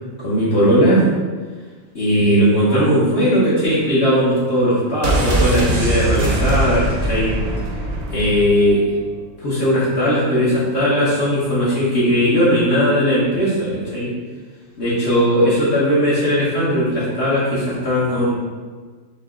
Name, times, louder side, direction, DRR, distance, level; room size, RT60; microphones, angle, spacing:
voice 1, 0.2-1.1 1.9-7.3 8.1-8.8 9.4-14.1 14.8-18.3, equal, 55° left, -10 dB, 1.3 m, -18 dB
sound 1, 5.0-8.8 9.1-9.2, right 1 dB, 80° right, 0.3 m, -21 dB
4.0 x 2.8 x 3.6 m, 1.5 s
omnidirectional pair, 1.4 m